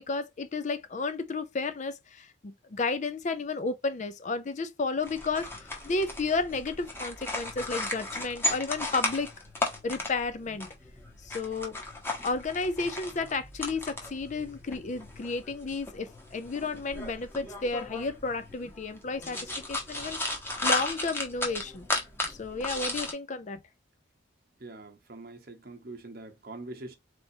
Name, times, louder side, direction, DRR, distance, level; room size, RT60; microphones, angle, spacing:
voice 1, 0.0-5.5 5.8-9.3 9.8-10.7 11.2-11.8 12.2-20.2 20.6-21.9 22.4-23.6, left 3 dB, 40° left, 0.4 m, -32 dB
sound 1, 5.0-23.1, left 2 dB, 10° left, 0.9 m, -35 dB
voice 2, 24.6-27.0, right 2 dB, 50° right, 0.9 m, -43 dB
4.2 x 3.4 x 2.7 m
head